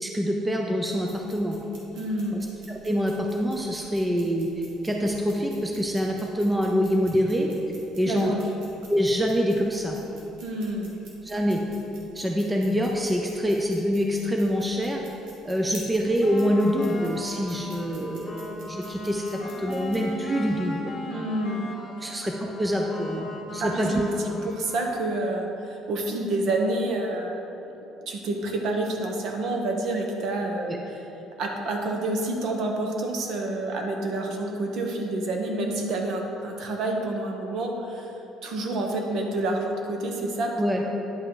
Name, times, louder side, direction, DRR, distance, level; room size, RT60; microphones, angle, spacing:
voice 1, 0.0-1.6 2.3-2.4 2.7-4.5 4.8-7.5 8.0-8.3 8.9-10.0 11.2-11.6 12.1-15.0 15.4-20.9 22.0-24.0 40.6-40.8, equal, 10° right, 0 dB, 0.5 m, -25 dB
sound 1, 0.8-20.0, right 2 dB, 80° right, 1.7 m, -51 dB
voice 2, 1.9-2.4 8.1-8.4 10.4-10.9 21.1-21.6 22.0-22.2 23.6-24.1 24.4-27.7 28.1-31.0 31.4-38.1 38.4-40.6, right 2 dB, 55° right, 2 dB, 1.0 m, -28 dB
sound 2, 16.2-25.0, left 2 dB, 25° left, 1.1 m, -39 dB
10.0 x 5.5 x 3.8 m, 3.0 s
cardioid pair, 155°, 0 cm